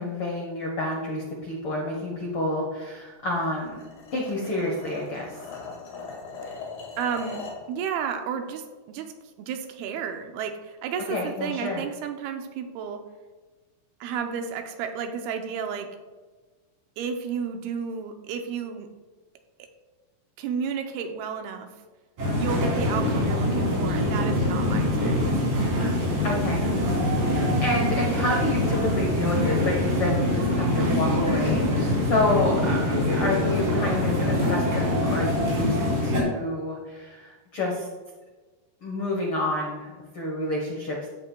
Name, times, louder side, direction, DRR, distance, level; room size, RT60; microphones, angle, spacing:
voice 1, 0.0-3.8 4.1-5.4 11.1-11.8 22.2-22.7 26.2-26.7 27.2-32.8 33.1-35.8 36.0-37.9 38.8-41.1, left 1 dB, 90° left, -1 dB, 1.1 m, -29 dB
sound 1, 3.3-7.7, left 4 dB, 65° left, 3.4 m, -40 dB
voice 2, 7.0-9.1 9.4-13.0 14.0-16.0 17.0-18.9 19.6-19.7 20.4-21.7 22.4-25.2, right 7 dB, 85° right, 5 dB, 2.7 m, -32 dB
sound 2, 22.2-36.2, left 1 dB, 60° right, 4.9 m, -24 dB
15.0 x 8.0 x 2.3 m, 1.3 s
omnidirectional pair, 4.4 m